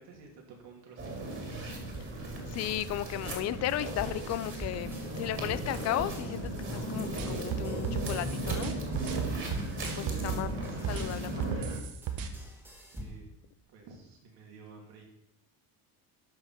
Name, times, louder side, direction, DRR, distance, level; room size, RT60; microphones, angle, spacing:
voice 1, 0.0-1.6 9.0-9.6 12.9-13.3 13.7-15.0, right 3 dB, 75° right, 0 dB, 2.9 m, -51 dB
sound 1, 1.0-11.8, right 1 dB, 30° right, 2.4 m, -36 dB
voice 2, 2.5-8.7 10.0-10.5 10.9-11.3, left 13 dB, 40° left, 15 dB, 0.5 m, -35 dB
sound 2, 4.0-13.3, equal, 5° right, 1.8 m, -44 dB
sound 3, 7.2-10.5 10.8-12.3, right 9 dB, 60° right, 1.1 m, -35 dB
12.0 x 5.9 x 4.4 m, 0.80 s
cardioid pair, 145°, 39 cm